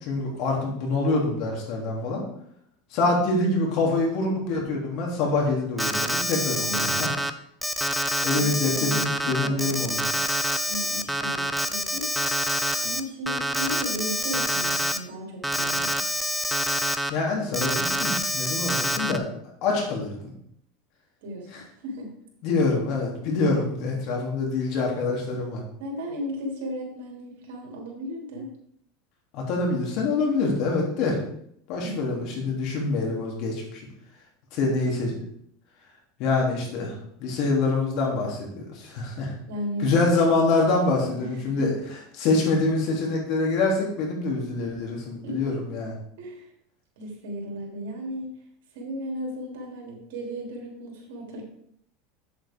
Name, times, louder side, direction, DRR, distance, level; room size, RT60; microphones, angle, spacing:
voice 1, 0.0-2.3 2.9-7.1 8.2-10.0 17.1-19.3 19.6-20.2 21.5-21.6 22.4-25.6 29.3-31.2 31.7-33.8 34.5-35.2 36.2-39.3 39.8-41.7 42.2-45.9, left 3 dB, 55° left, -1 dB, 3.2 m, -25 dB
Alarm, 5.8-7.3 7.6-13.0 13.3-15.0 15.4-17.1 17.5-19.2, equal, ahead, 0.5 m, -26 dB
voice 2, 6.7-7.2 8.3-8.5 8.8-10.1 10.6-12.1 12.8-16.1 21.2-21.5 21.8-22.1 25.8-28.5 31.8-32.6 34.6-34.8 39.5-39.9 41.2-41.7 45.2-45.6 46.2-46.5 47.0-48.3 48.7-51.4, equal, 75° right, 0 dB, 3.2 m, -35 dB
8.5 x 7.7 x 3.7 m, 0.70 s
supercardioid pair, 130°, 0 cm